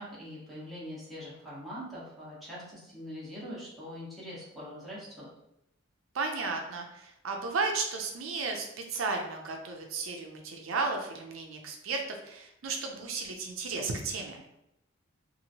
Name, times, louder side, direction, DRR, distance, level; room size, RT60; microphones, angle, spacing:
voice 1, 0.0-5.3, equal, ahead, -9 dB, 1.1 m, -43 dB
voice 2, 6.1-14.4, right 4 dB, 90° right, 3 dB, 0.5 m, -34 dB
2.9 x 2.5 x 2.7 m, 0.83 s
head